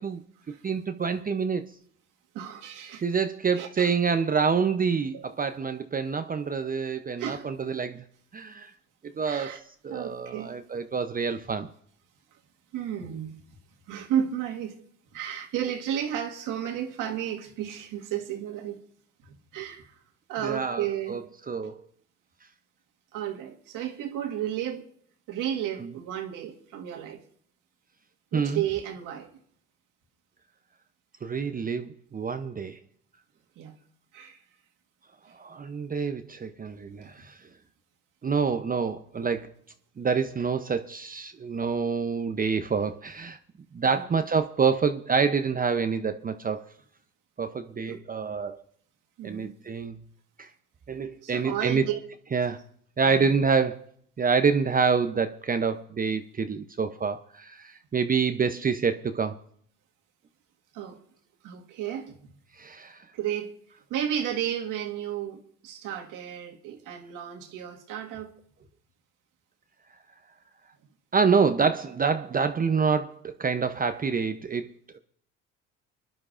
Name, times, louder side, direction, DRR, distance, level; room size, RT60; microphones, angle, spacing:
voice 1, 0.0-1.7 3.0-8.0 8.3-8.7 9.0-11.7 20.4-21.2 21.5-21.8 25.8-25.9 28.3-28.6 31.2-32.8 35.3-37.4 38.2-39.5 40.0-43.4 43.7-46.6 47.4-48.6 49.2-50.0 50.4-50.5 50.9-51.8 52.3-52.6 53.0-53.8 54.2-59.3 62.6-63.0 71.1-74.7, right 5 dB, 25° right, 0.7 m, -27 dB
voice 2, 2.3-3.0 3.6-4.0 5.1-5.2 7.2-7.4 9.1-9.6 9.9-10.6 12.7-13.4 13.9-14.8 15.1-18.8 19.2-19.9 20.3-21.2 23.1-24.8 25.3-27.2 28.3-29.3 33.6-33.7 34.1-34.4 37.0-37.1 43.8-44.0 47.9-48.0 49.2-49.5 51.2-52.0 53.0-53.3 60.7-61.0 61.4-62.3 63.1-63.5 63.9-68.3, right 10 dB, 70° right, 1.8 m, -33 dB
24.5 x 11.0 x 2.5 m
supercardioid pair, 75°, 33 cm